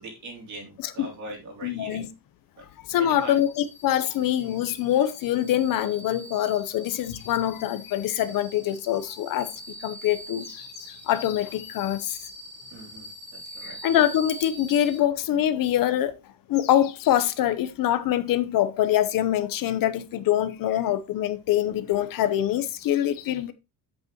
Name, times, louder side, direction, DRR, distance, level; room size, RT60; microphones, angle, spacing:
voice 1, 0.0-2.1 2.6-2.7 3.0-3.4 12.7-13.8, right 1 dB, 50° right, 3.4 m, -41 dB
voice 2, 1.6-2.1 2.9-9.5 9.8-12.2 13.6-16.2 16.5-23.5, left 12 dB, 60° left, 0.9 m, -24 dB
sound 1, 3.2-15.0, equal, 65° right, 4.1 m, -44 dB
8.1 x 8.0 x 3.0 m
cardioid pair, 170°, 38 cm